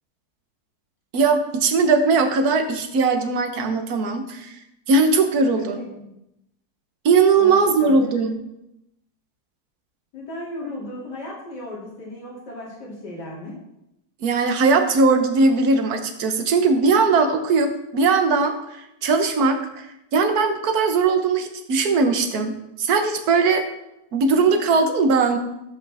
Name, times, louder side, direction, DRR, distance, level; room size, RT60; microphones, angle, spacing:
voice 1, 1.1-4.6 4.9-5.8 7.0-8.3 14.2-19.9 20.1-23.6 24.1-25.4, right 4 dB, 65° right, 6 dB, 1.6 m, -19 dB
voice 2, 5.5-6.1 7.4-8.3 10.1-13.6, left 1 dB, 80° left, -4 dB, 3.3 m, -36 dB
14.5 x 7.8 x 3.5 m, 0.87 s
omnidirectional pair, 1.8 m